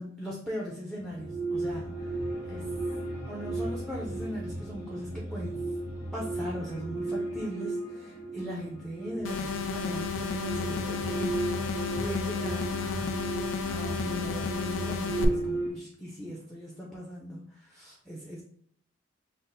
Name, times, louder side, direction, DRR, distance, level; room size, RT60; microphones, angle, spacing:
voice 1, 0.0-2.7 3.3-5.7 6.1-11.6 11.9-13.3 13.7-18.4, equal, ahead, -4 dB, 0.5 m, -39 dB
sound 1, 1.0-15.7, right 2 dB, 25° left, 1.5 m, -35 dB
sound 2, 9.2-15.2, left 5 dB, 85° left, 0.4 m, -33 dB
5.6 x 2.1 x 2.6 m, 0.63 s
head